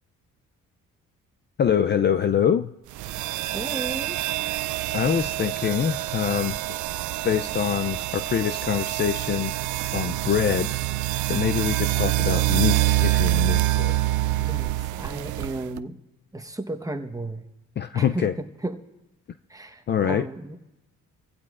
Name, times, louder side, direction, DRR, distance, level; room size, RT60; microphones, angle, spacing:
voice 1, 1.6-2.7 4.9-6.6 7.2-9.5 9.9-10.7 11.3-13.9 17.8-18.3 19.9-20.3, left 8 dB, 35° left, 10 dB, 0.4 m, -24 dB
sound 1, 2.9-15.8, right 16 dB, 75° right, 0.4 m, -26 dB
voice 2, 3.5-4.2 14.4-16.0 16.3-17.4 17.9-18.8 19.5-20.6, right 2 dB, 10° right, 7 dB, 1.1 m, -34 dB
25.0 x 16.0 x 2.4 m, 0.96 s
cardioid pair, 90°, 30 cm